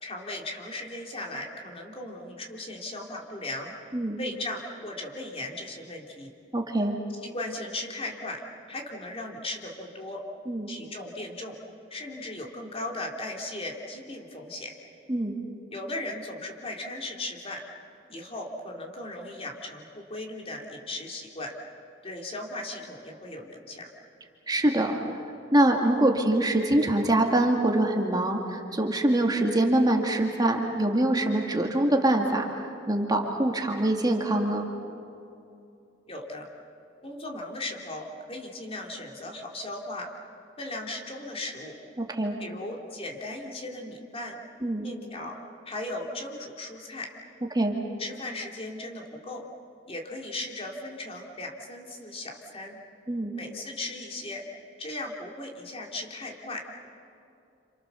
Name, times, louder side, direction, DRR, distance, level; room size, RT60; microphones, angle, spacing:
voice 1, 0.0-3.7 4.2-6.3 7.2-8.4 8.7-10.2 10.7-11.5 11.9-14.7 15.7-17.6 18.1-21.5 22.0-23.9 36.1-36.5 37.0-40.1 40.6-41.7 42.4-44.4 44.8-45.4 45.6-47.1 48.0-49.4 49.9-52.8 53.3-54.4 54.8-56.9, left 2 dB, 30° left, 0 dB, 3.1 m, -37 dB
voice 2, 6.5-7.0 10.5-10.7 15.1-15.3 24.5-25.0 25.5-34.7 42.0-42.3 44.6-44.9 47.5-47.7 53.1-53.3, right 1 dB, 20° right, 1 dB, 2.0 m, -24 dB
30.0 x 27.5 x 6.9 m, 2.7 s
head